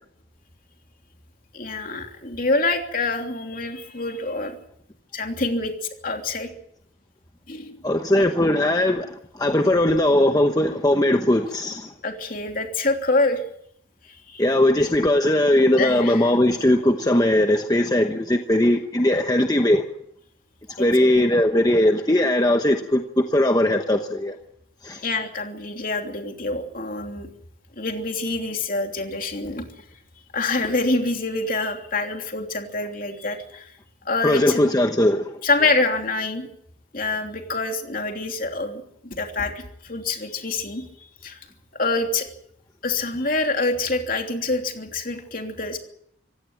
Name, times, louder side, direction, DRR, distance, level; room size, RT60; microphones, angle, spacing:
voice 1, 1.5-4.6 5.1-5.7 6.0-6.5 7.5-7.8 12.0-13.4 14.1-14.5 15.8-16.3 20.8-21.1 25.0-27.3 27.8-29.7 30.3-33.7 34.0-34.6 35.4-36.5 36.9-40.8 41.2-41.4 41.8-42.3 42.8-45.8, left 3 dB, 45° left, 3.1 m, -26 dB
voice 2, 7.8-9.1 9.4-11.9 14.4-19.8 20.8-23.0 23.3-24.4 24.8-25.0 34.2-35.3, left 1 dB, 20° left, 1.0 m, -19 dB
26.0 x 16.5 x 7.7 m
head